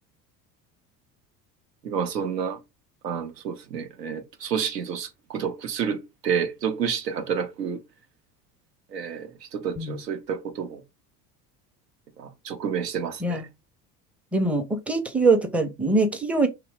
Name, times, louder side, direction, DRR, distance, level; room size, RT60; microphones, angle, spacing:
voice 1, 1.8-2.6 3.0-7.8 8.9-10.8 12.2-13.4, right 7 dB, 85° right, 0.7 m, -29 dB
voice 2, 14.3-16.5, right 3 dB, 5° right, 0.4 m, -23 dB
2.9 x 2.1 x 3.2 m
hypercardioid pair, 70°, 47 cm